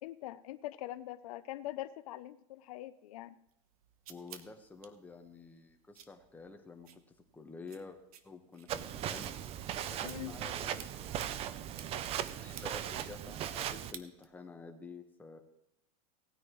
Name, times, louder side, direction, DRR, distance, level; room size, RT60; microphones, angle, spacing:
voice 1, 0.0-3.3 10.0-10.3, left 15 dB, 80° left, 11 dB, 0.6 m, -43 dB
sound 1, 3.5-14.5, right 9 dB, 90° right, 1.0 m, -56 dB
voice 2, 4.1-6.9 7.3-8.0 8.2-9.3 9.9-15.4, left 4 dB, 10° left, 4 dB, 1.3 m, -50 dB
Walk footsteps, 8.7-13.9, right 10 dB, 35° right, 0.6 m, -38 dB
18.0 x 9.6 x 3.1 m, 0.80 s
supercardioid pair, 140°, 18 cm